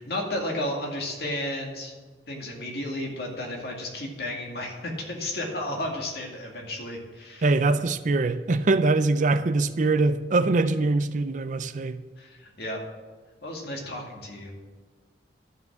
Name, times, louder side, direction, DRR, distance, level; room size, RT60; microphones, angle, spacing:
voice 1, 0.0-1.9 2.3-7.8 12.2-12.8 13.4-14.5, left 1 dB, 60° left, 2.2 m, -33 dB
voice 2, 7.4-12.0, right 3 dB, 45° right, 0.4 m, -23 dB
12.0 x 5.9 x 7.6 m
head